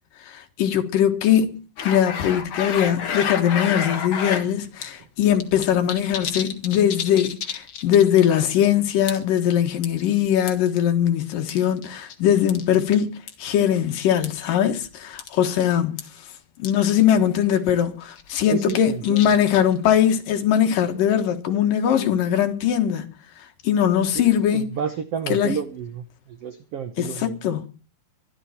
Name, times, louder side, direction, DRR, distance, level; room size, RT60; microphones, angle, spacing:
voice 1, 0.3-13.1 13.4-16.0 16.6-23.1 23.6-24.6 25.3-25.5 27.2-27.7, left 9 dB, 70° left, 3.0 m, -21 dB
sound 1, 1.8-4.5 4.8-4.9 5.2-8.2 8.5-8.7 9.1-9.4 9.8-10.7 11.5-12.2 12.5-12.7 13.3-13.5 14.2-14.4 14.7-14.9 15.2-15.4 15.6-15.7 16.0-16.1 16.6-16.7 17.0-17.1 17.4-17.7 18.2-19.8, left 7 dB, 50° left, 1.8 m, -30 dB
voice 2, 18.5-19.3 24.1-27.4, right 7 dB, 70° right, 1.4 m, -31 dB
23.5 x 11.5 x 4.3 m
omnidirectional pair, 4.2 m